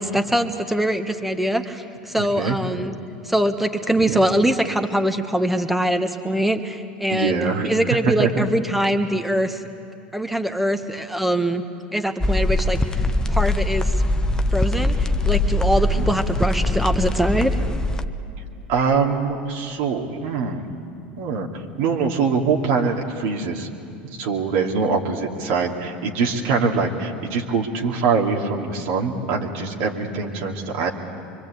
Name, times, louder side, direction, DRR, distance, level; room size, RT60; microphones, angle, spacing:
voice 1, 0.0-2.9 3.2-7.4 7.6-9.6 10.1-11.6 11.9-13.0 13.3-13.9 14.5-17.5, right 1 dB, 5° right, 7 dB, 1.7 m, -23 dB
voice 2, 2.1-2.6 4.0-4.2 7.1-8.5 15.9-16.1 18.4-20.7 21.2-23.7 24.0-30.9, right 5 dB, 65° right, 0 dB, 2.6 m, -23 dB
sound 1, 12.2-18.1, left 1 dB, 15° left, 1.0 m, -22 dB
25.0 x 24.0 x 8.5 m, 2.5 s
hypercardioid pair, 80°, 5 cm